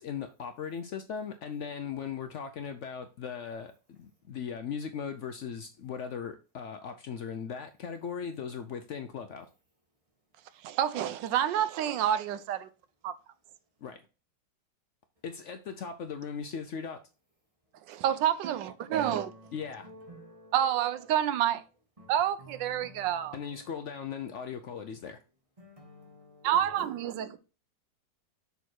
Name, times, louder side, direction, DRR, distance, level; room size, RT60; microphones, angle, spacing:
voice 1, 0.0-9.5 13.8-14.0 15.2-17.0 19.5-19.9 23.3-25.2, left 7 dB, 90° left, 0.6 m, -38 dB
voice 2, 10.6-12.7 13.0-13.1 17.9-19.3 20.5-21.6 22.1-23.4 26.4-27.4, right 10 dB, 80° right, 1.3 m, -28 dB
voice 3, 18.5-21.3 22.0-24.5 25.6-27.4, equal, 20° right, 1.7 m, -53 dB
6.4 x 4.1 x 4.5 m
omnidirectional pair, 2.0 m